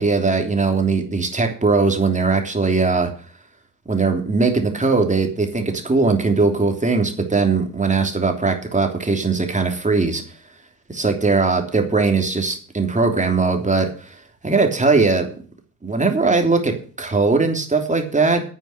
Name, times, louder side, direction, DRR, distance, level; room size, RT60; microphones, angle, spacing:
voice 1, 0.0-3.1 3.8-10.2 10.9-15.3 15.8-18.4, right 4 dB, 15° right, 4 dB, 3.1 m, -20 dB
9.6 x 9.3 x 6.7 m, 0.43 s
figure-of-eight pair, 60°, 48 cm